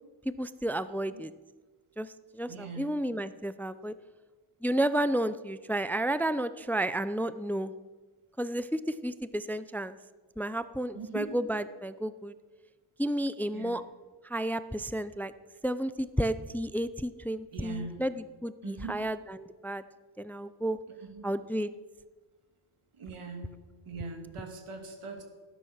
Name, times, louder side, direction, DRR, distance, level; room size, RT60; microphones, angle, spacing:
voice 1, 0.3-1.3 2.0-3.9 4.6-7.7 8.4-10.0 10.4-12.3 13.0-13.8 14.2-15.3 15.6-19.8 20.2-20.8 21.2-21.7, right 1 dB, 5° left, 14 dB, 0.4 m, -32 dB
voice 2, 2.5-3.0 10.9-11.3 13.5-13.8 17.5-18.1 18.6-19.0 21.0-21.2 22.9-23.5 23.8-25.2, right 4 dB, 85° right, 4 dB, 2.8 m, -41 dB
18.0 x 10.0 x 6.4 m, 1.3 s
wide cardioid pair, 95°, 49 cm